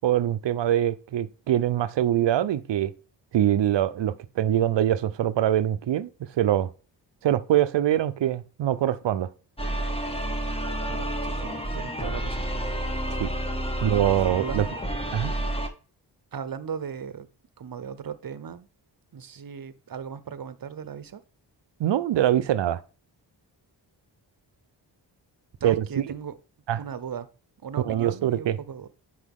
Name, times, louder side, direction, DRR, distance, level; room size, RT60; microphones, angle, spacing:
voice 1, 0.0-2.9 3.3-6.7 7.2-9.3 13.2-13.3 13.8-14.7 15.1-15.3 21.8-22.8 25.6-26.0 26.7-26.8 27.8-28.6, right 11 dB, 75° right, 0.7 m, -23 dB
sound 1, 9.6-15.7, right 1 dB, 15° left, 1.9 m, -30 dB
voice 2, 10.9-12.4 13.8-14.1 14.4-14.7 16.3-17.3 17.6-18.7 19.1-21.2 25.6-26.3 26.8-27.3 27.6-28.9, right 7 dB, 50° right, 1.0 m, -37 dB
10.0 x 4.8 x 3.6 m
cardioid pair, 55°, 44 cm